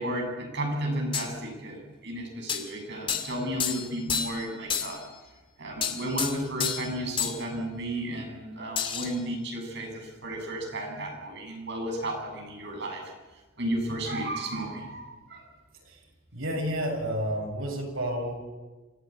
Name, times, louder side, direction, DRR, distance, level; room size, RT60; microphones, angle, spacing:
voice 1, 0.0-5.0 5.6-13.0 13.6-15.5, right 1 dB, 60° right, 1 dB, 7.5 m, -33 dB
sound 1, 1.1-1.3 2.5-2.7 3.1-3.4 3.6-4.5 4.7-5.0 5.8-6.9 7.2-7.4 8.8-9.1, left 6 dB, 25° left, 2.2 m, -30 dB
voice 2, 16.3-18.3, equal, 90° right, 1 dB, 7.4 m, -30 dB
26.5 x 16.0 x 8.6 m, 1.2 s
head